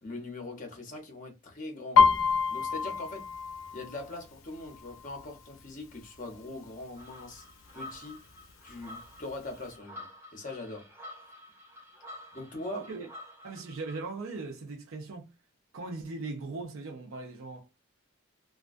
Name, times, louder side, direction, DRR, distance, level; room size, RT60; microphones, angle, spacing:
voice 1, 0.0-2.1 2.5-3.3 3.7-7.4 7.7-8.2 8.6-10.9 12.3-12.9, left 2 dB, 40° left, 0.7 m, -41 dB
Piano, 2.0-5.6 6.0-6.4 6.7-7.3 7.9-8.0 8.3-9.3 9.7-9.8, left 6 dB, 90° left, 0.5 m, -27 dB
sound 1, 7.0-14.0, left 1 dB, 10° right, 0.6 m, -49 dB
voice 2, 12.7-13.1 13.4-15.3 15.7-17.7, right 3 dB, 85° right, 0.5 m, -39 dB
2.3 x 2.2 x 2.4 m
head